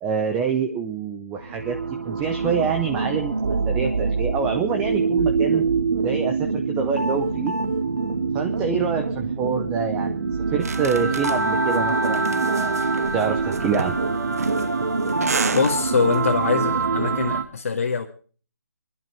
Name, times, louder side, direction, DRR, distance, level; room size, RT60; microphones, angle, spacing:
voice 1, 0.0-1.8 2.0-3.3 3.7-5.6 6.0-7.5 8.3-12.8 13.1-14.0, right 6 dB, 10° right, 6 dB, 0.6 m, -26 dB
sound 1, 1.4-17.4, right 4 dB, 80° right, 2.2 m, -24 dB
sound 2, 10.6-16.2, right 5 dB, 55° right, 1.0 m, -32 dB
voice 2, 15.5-18.1, left 5 dB, 50° left, 0 dB, 1.6 m, -23 dB
26.5 x 11.0 x 3.3 m, 0.39 s
hypercardioid pair, 165°, 10 cm